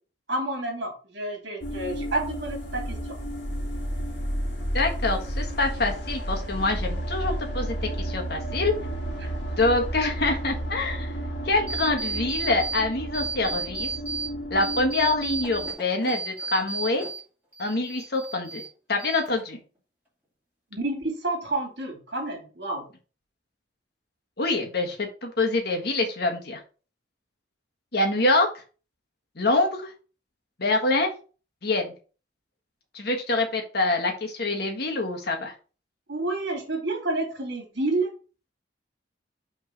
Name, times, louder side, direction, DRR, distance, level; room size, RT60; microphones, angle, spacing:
voice 1, 0.3-3.2 20.7-22.8 36.1-38.1, right 2 dB, 60° right, 1 dB, 2.8 m, -29 dB
sound 1, 1.6-15.7, equal, 70° left, 1.7 m, -32 dB
voice 2, 4.7-8.7 9.6-11.1 11.4-13.9 14.5-17.0 17.6-18.6 18.9-19.6 24.4-26.6 27.9-28.5 29.4-29.9 30.6-31.1 31.6-31.9 32.9-35.5, left 2 dB, 55° left, 2 dB, 1.5 m, -25 dB
sound 2, 11.7-12.8 13.1-14.3 14.6-17.2 17.5-18.7 19.0-19.6, right 4 dB, 10° right, 2.6 m, -33 dB
5.9 x 3.7 x 5.1 m, 0.36 s
head